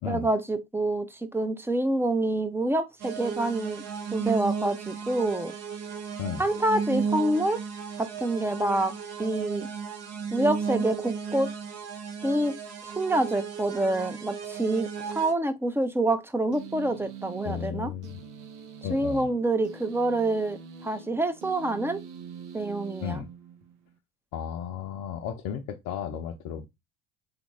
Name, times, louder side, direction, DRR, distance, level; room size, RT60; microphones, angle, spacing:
voice 1, 0.1-3.8 4.1-5.5 6.4-7.6 8.0-8.9 9.2-9.7 10.3-11.5 12.2-17.9 18.9-22.0 22.5-23.2, right 2 dB, 5° right, 0.6 m, -27 dB
sound 1, 3.0-15.3, right 6 dB, 50° right, 0.9 m, -34 dB
sound 2, 16.5-23.9, right 7 dB, 80° right, 0.7 m, -44 dB
voice 2, 17.4-18.2 18.8-19.3 23.0-23.3 24.3-26.7, left 8 dB, 55° left, 0.6 m, -34 dB
3.4 x 2.4 x 3.1 m
hypercardioid pair, 65°, 33 cm